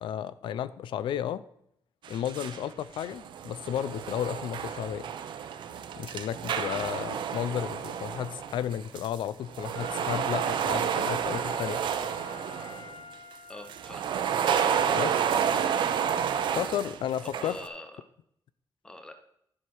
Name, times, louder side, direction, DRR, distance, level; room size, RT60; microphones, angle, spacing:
voice 1, 0.0-1.4 2.1-5.1 6.0-11.8 14.9-15.2 16.5-17.6, left 10 dB, 80° left, 16 dB, 0.4 m, -33 dB
sound 1, 2.0-2.6 2.9-9.2 9.5-12.9 13.7-17.7, right 8 dB, 75° right, 0.7 m, -30 dB
Wind instrument woodwind instrument, 9.7-14.0 14.5-14.6, left 4 dB, 60° left, 4.2 m, -47 dB
voice 2, 13.5-14.1 17.2-18.0 18.8-19.1, left 2 dB, 10° left, 7 dB, 0.8 m, -44 dB
10.5 x 6.4 x 4.7 m, 0.73 s
wide cardioid pair, 140°, 8 cm